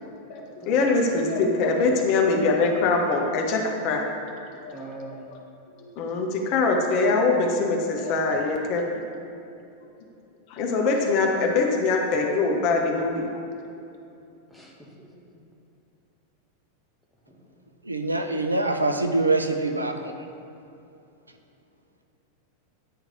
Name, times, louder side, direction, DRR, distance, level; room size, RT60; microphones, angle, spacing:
voice 1, 0.0-4.0 4.6-4.8 5.1-5.4 5.8-8.9 10.5-13.2, left 3 dB, 45° left, 1 dB, 0.8 m, -23 dB
voice 2, 0.6-1.0 4.7-5.3 14.5-15.1 17.3-17.5, right 2 dB, 5° left, -1 dB, 1.0 m, -43 dB
voice 3, 17.8-20.1, right 2 dB, 80° right, 6 dB, 0.4 m, -24 dB
9.3 x 3.2 x 3.7 m, 2.7 s
figure-of-eight pair, 90°, 0 cm